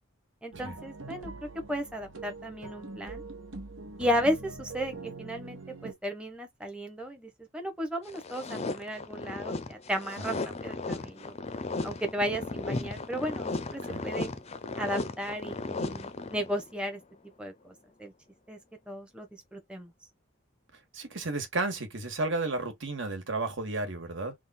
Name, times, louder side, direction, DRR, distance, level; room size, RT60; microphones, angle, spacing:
voice 1, 0.4-3.2 4.0-11.4 11.8-14.3 14.8-17.0 17.4-17.7 18.0-18.1 18.5-18.6 18.9-19.3 19.5-19.9, equal, 5° right, 0.8 m, -34 dB
sound 1, 0.5-5.9, right 3 dB, 80° right, 1.2 m, -43 dB
sound 2, 8.1-16.7, left 3 dB, 30° left, 0.5 m, -35 dB
voice 2, 20.9-24.3, right 2 dB, 65° right, 1.6 m, -32 dB
3.6 x 2.3 x 4.1 m
head